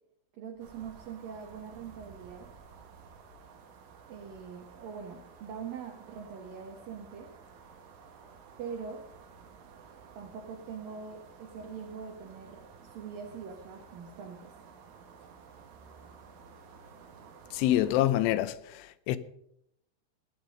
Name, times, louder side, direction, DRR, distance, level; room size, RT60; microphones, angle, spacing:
voice 1, 0.4-2.5 4.1-7.3 8.6-9.0 10.1-14.5, right 6 dB, 60° right, 2.7 m, -43 dB
sound 1, 0.6-18.1, right 6 dB, 85° right, 4.5 m, -53 dB
voice 2, 17.5-19.2, left 13 dB, 85° left, 3.2 m, -27 dB
18.5 x 11.0 x 5.3 m
omnidirectional pair, 5.4 m